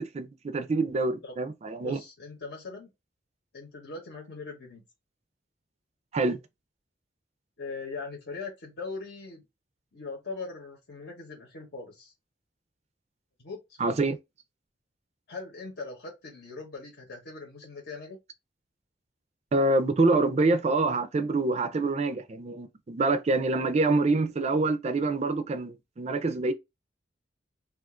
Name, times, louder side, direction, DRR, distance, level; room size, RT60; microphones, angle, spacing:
voice 1, 0.0-2.0 6.1-6.4 13.8-14.2 19.5-26.5, right 3 dB, 35° right, 0.4 m, -26 dB
voice 2, 1.8-2.9 3.5-4.8 7.6-9.4 9.9-12.1 13.4-13.8 15.3-18.2, left 4 dB, 60° left, 1.0 m, -40 dB
2.4 x 2.4 x 3.6 m
head